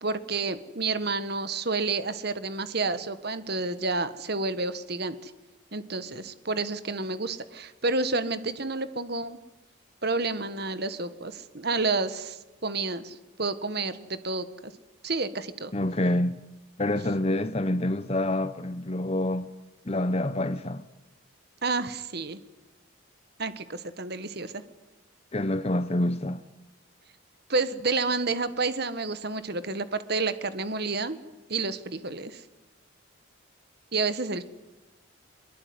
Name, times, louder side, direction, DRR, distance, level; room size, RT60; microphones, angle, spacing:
voice 1, 0.0-5.3 5.7-9.4 10.0-14.5 15.0-15.7 21.6-22.4 23.4-24.6 27.5-31.2 31.5-32.4 33.9-34.4, right 3 dB, 50° right, 1.5 m, -30 dB
voice 2, 15.7-16.4 16.8-19.5 19.9-20.8 25.3-26.4, left 1 dB, 30° left, 0.8 m, -27 dB
23.0 x 22.0 x 9.7 m
head